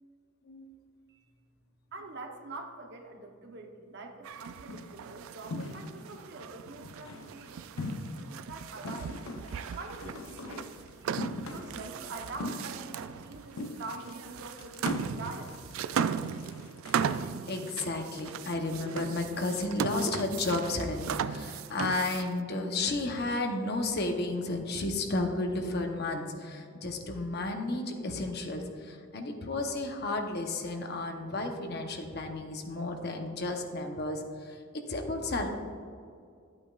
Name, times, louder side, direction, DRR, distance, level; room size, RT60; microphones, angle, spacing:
voice 1, 1.9-9.2 9.7-10.7 11.0-15.7, right 3 dB, 50° right, 4 dB, 0.9 m, -45 dB
sound 1, 4.2-22.4, right 7 dB, 70° right, 0.3 m, -37 dB
sound 2, 4.7-5.0 5.5-6.2 6.7-7.3 7.8-8.4 8.8-10.8 11.2-11.9 12.3-13.3 13.5-14.2 14.6-17.1, left 2 dB, 75° left, 0.7 m, -40 dB
voice 2, 17.0-34.6 34.9-35.6, left 2 dB, 50° left, 4 dB, 0.9 m, -33 dB
12.5 x 8.8 x 2.4 m, 2.3 s
head